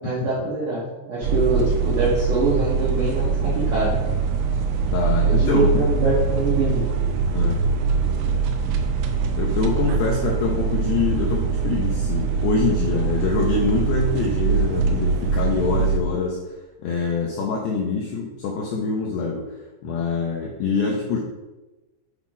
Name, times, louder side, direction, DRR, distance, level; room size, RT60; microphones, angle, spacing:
voice 1, 0.0-3.9 5.3-6.8, right 2 dB, 70° right, -7 dB, 1.9 m, -24 dB
sound 1, 1.2-16.0, right 5 dB, 85° right, 3.4 m, -22 dB
voice 2, 4.9-5.9 7.3-7.6 9.4-16.4 16.8-19.5 19.8-21.2, left 4 dB, 80° left, -2 dB, 2.4 m, -24 dB
8.7 x 3.8 x 4.9 m, 1.1 s
omnidirectional pair, 5.8 m